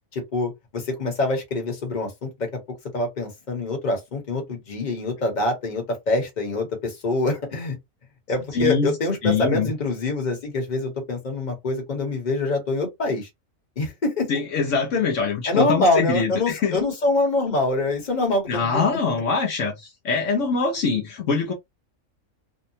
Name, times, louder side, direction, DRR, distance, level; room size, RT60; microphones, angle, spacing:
voice 1, 0.1-2.5 2.9-7.8 8.3-13.3 13.8-14.3 15.5-19.0, left 2 dB, 35° left, 1.1 m, -25 dB
voice 2, 8.5-8.9 9.2-9.7 14.3-16.8 18.5-21.5, left 5 dB, 70° left, 1.0 m, -23 dB
2.8 x 2.2 x 2.7 m
omnidirectional pair, 1.4 m